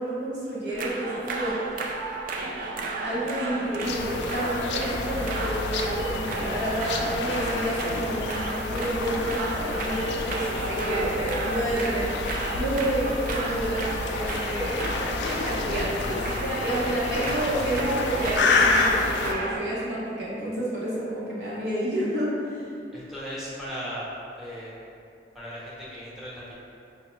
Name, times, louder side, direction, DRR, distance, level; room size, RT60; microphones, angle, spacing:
voice 1, 0.0-1.8 3.0-12.1 12.5-15.0 15.4-22.6, right 1 dB, 65° right, -8 dB, 0.7 m, -29 dB
sound 1, 0.7-19.6, right 2 dB, 50° right, 0.3 m, -33 dB
sound 2, 3.8-19.3, left 3 dB, 70° left, 0.3 m, -29 dB
voice 2, 22.9-24.0 24.4-24.8 25.3-26.5, equal, ahead, -9 dB, 0.8 m, -37 dB
5.1 x 2.1 x 3.0 m, 2.6 s
head